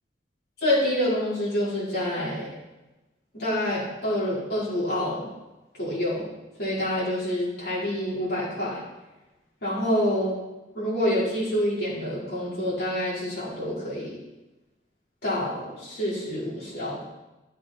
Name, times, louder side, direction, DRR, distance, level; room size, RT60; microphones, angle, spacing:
voice 1, 0.6-2.5 3.3-5.3 5.7-6.2 6.6-8.8 9.6-10.3 10.7-14.2 15.2-17.0, left 1 dB, 55° left, -8 dB, 4.7 m, -27 dB
13.5 x 7.5 x 4.5 m, 1.0 s
head